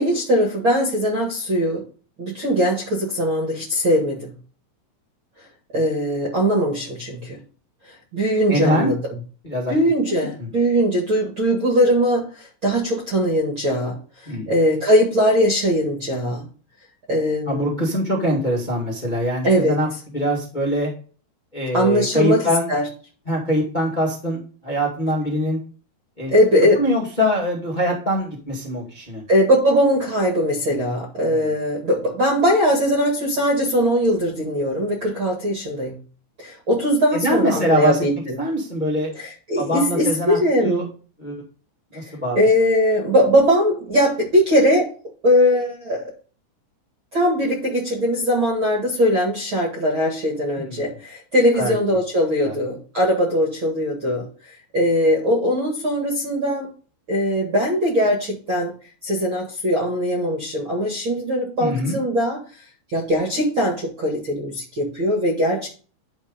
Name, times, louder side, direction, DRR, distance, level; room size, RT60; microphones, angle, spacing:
voice 1, 0.0-1.8 2.2-4.3 5.7-7.4 7.9-9.0 9.7-14.0 14.5-16.5 17.1-17.7 19.4-19.8 21.7-22.4 22.7-22.8 26.3-26.8 29.3-36.0 36.4-38.4 39.1-40.9 42.4-44.9 45.2-46.1 47.1-56.7 57.1-58.7 59.0-62.4 62.9-65.7, equal, 45° right, -3 dB, 1.7 m, -20 dB
voice 2, 8.5-8.9 9.4-9.7 10.4-10.5 14.2-14.5 17.4-19.9 20.1-20.9 21.5-22.7 23.2-25.6 26.2-26.3 26.8-29.2 31.3-31.4 37.1-38.0 38.4-39.1 39.5-40.8 41.2-41.4 41.9-42.4 50.6-50.9 51.5-51.7 52.4-52.5 61.6-62.0, equal, 55° left, -2 dB, 0.5 m, -23 dB
11.0 x 4.6 x 5.2 m, 0.39 s
omnidirectional pair, 5.4 m